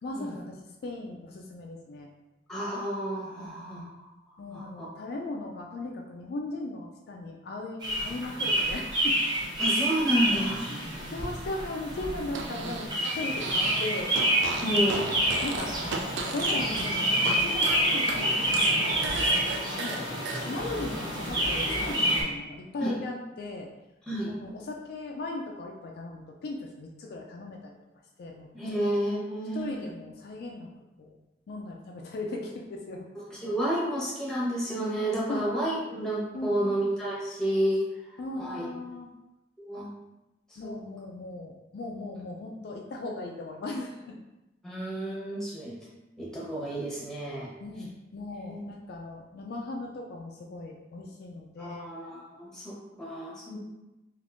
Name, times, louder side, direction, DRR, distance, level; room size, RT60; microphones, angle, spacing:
voice 1, 0.0-2.1 3.4-3.9 4.4-9.2 10.1-10.2 10.7-14.2 14.5-15.0 15.4-15.7 16.3-23.7 24.3-27.8 28.2-28.5 29.5-30.7 31.0-31.2 31.5-33.1 35.3-35.4 36.3-36.8 38.2-39.1 40.6-44.2 47.6-51.9, left 2 dB, 60° left, 0 dB, 0.3 m, -38 dB
voice 2, 2.5-4.1 4.5-4.9 9.6-10.6 14.6-15.1 22.8-23.0 24.1-24.3 28.5-29.8 33.3-38.7 39.6-39.9 40.5-40.7 44.6-45.8 46.2-47.5 48.5-48.6 51.6-53.6, right 1 dB, 5° left, -7 dB, 0.9 m, -30 dB
sound 1, 7.8-22.2, right 1 dB, 25° right, 0.7 m, -28 dB
Fart, 12.3-13.9 14.1-17.4 17.6-20.4, right 4 dB, 80° right, 0.4 m, -35 dB
3.4 x 2.6 x 2.5 m, 1.0 s
head